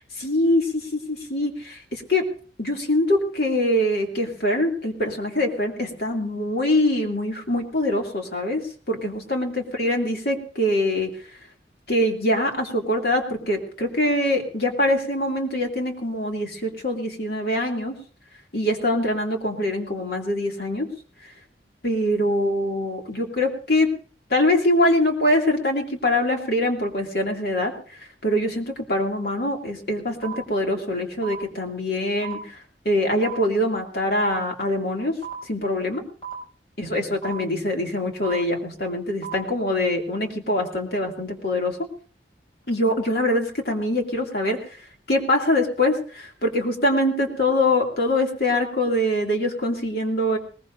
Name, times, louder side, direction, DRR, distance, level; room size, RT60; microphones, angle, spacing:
voice 1, 0.2-2.2 2.6-8.6 8.9-9.5 9.8-11.1 11.9-17.9 18.5-20.9 21.8-23.9 24.3-32.6 32.8-35.1 35.4-36.0 36.8-41.8 42.7-44.7 45.1-50.4, left 1 dB, 60° left, 1 dB, 2.6 m, -23 dB
sound 1, 30.2-30.3 31.2-31.3 32.2-32.3 33.2-33.3 34.2-34.3 35.2-35.3 36.2-36.3 37.2-37.3 38.2-38.3 39.2-39.3, right 8 dB, 30° left, 5.9 m, -33 dB
21.0 x 20.5 x 2.6 m, 0.40 s
head